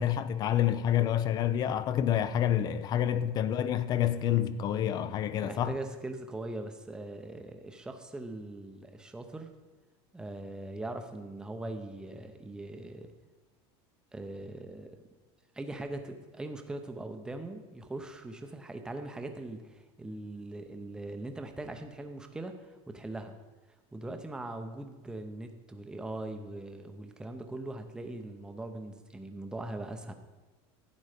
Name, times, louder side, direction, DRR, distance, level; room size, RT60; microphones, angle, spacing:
voice 1, 0.0-5.8, left 10 dB, 30° left, 0.4 m, -28 dB
voice 2, 5.4-9.5 10.1-13.1 14.1-15.0 15.5-23.4 23.9-30.1, right 2 dB, 5° right, 0.7 m, -41 dB
12.0 x 8.4 x 5.0 m
supercardioid pair, 160°, 14 cm